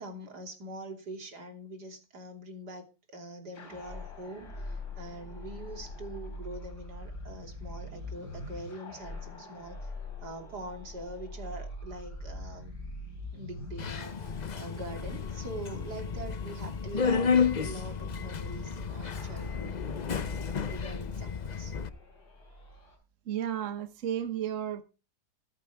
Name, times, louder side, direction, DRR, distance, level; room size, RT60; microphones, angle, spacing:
voice 1, 0.0-9.9 10.2-12.7 13.3-19.8 20.7-21.7, right 1 dB, 70° right, 4 dB, 3.4 m, -44 dB
sound 1, 3.5-23.0, left 2 dB, 70° left, 4.3 m, -44 dB
Subway metro underground, 13.8-21.9, left 6 dB, 55° left, 0.5 m, -32 dB
voice 2, 23.2-24.8, right 10 dB, 55° right, 10 dB, 1.2 m, -33 dB
14.0 x 13.5 x 3.5 m, 0.32 s
omnidirectional pair, 1.8 m